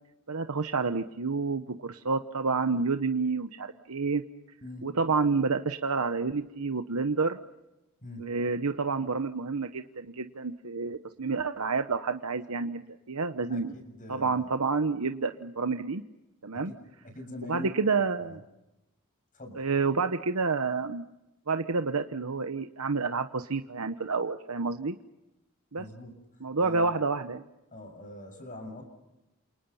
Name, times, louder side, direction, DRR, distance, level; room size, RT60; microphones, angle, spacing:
voice 1, 0.3-4.2 4.8-7.4 8.2-13.7 14.1-16.0 16.4-16.7 17.5-18.4 19.6-21.0 21.5-25.0 25.7-25.8 26.4-27.4, right 4 dB, 80° right, 8 dB, 1.1 m, -29 dB
voice 2, 4.6-5.0 8.0-8.3 13.5-14.6 16.5-16.8 17.0-17.9 18.2-18.4 19.3-19.7 25.8-26.1 26.6-27.0 27.7-28.8, left 1 dB, 35° left, 6 dB, 7.2 m, -43 dB
29.5 x 28.5 x 5.7 m, 0.95 s
head